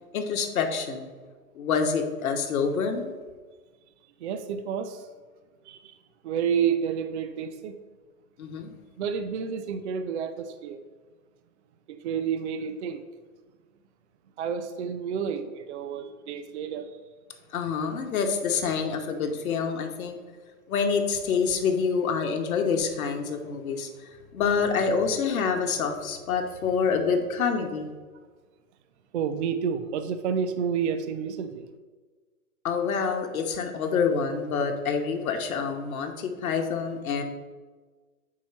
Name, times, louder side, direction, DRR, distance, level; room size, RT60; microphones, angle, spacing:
voice 1, 0.1-1.1 1.5-3.1 8.4-8.7 17.5-20.2 20.7-27.9 32.6-37.2, left 5 dB, 65° left, 5 dB, 1.0 m, -27 dB
voice 2, 4.2-5.1 5.6-6.0 6.2-7.8 9.0-10.8 11.9-13.0 14.4-17.0 29.1-31.7, right 7 dB, 50° right, 9 dB, 0.5 m, -30 dB
4.6 x 4.3 x 5.8 m, 1.4 s
hypercardioid pair, 150°, 46 cm